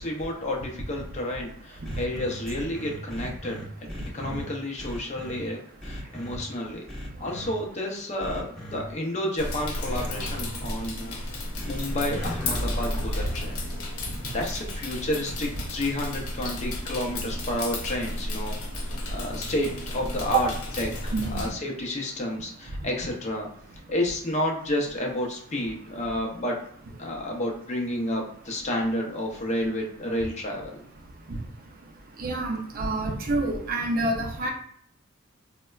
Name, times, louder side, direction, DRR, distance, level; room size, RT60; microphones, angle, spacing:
voice 1, 0.0-3.6 4.1-5.6 5.8-6.8 7.2-8.5 8.7-13.5 14.3-20.5 20.8-23.5 23.9-26.6 27.0-30.8, left 1 dB, 30° left, 0 dB, 0.6 m, -30 dB
sound 1, 1.8-4.5 4.8-5.4 5.8-6.4 6.9-7.5 8.2-8.8 9.8-10.4 11.6-13.5, equal, ahead, 0.7 m, -35 dB
sound 2, 9.4-21.5, left 1 dB, 80° left, 0.8 m, -33 dB
voice 2, 21.1-21.4 32.2-34.5, right 3 dB, 40° right, 2 dB, 0.4 m, -27 dB
4.0 x 2.1 x 2.3 m, 0.64 s
head